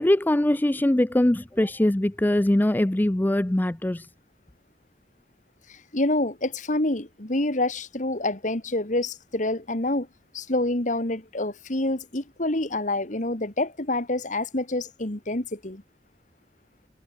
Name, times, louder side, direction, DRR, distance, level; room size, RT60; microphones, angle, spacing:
voice 1, 0.0-4.1, left 1 dB, 10° left, 0.4 m, -22 dB
voice 2, 5.7-10.1 10.3-15.8, left 2 dB, 45° left, 2.2 m, -27 dB
head